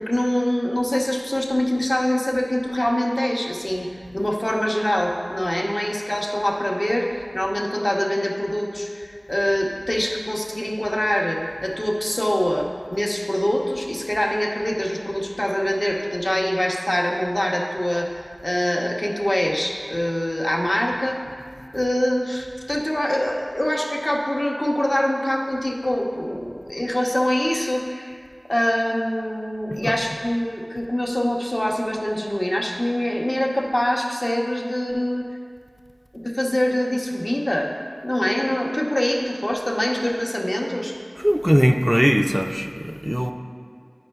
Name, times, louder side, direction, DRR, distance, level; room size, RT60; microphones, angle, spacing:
voice 1, 0.0-18.2 18.4-21.2 21.7-28.2 28.5-35.3 36.1-37.7 38.0-40.9, left 1 dB, 40° left, -1 dB, 0.7 m, -24 dB
voice 2, 41.2-43.3, equal, 10° right, 5 dB, 0.4 m, -20 dB
9.4 x 5.2 x 2.3 m, 2.1 s
wide cardioid pair, 45°, 0 cm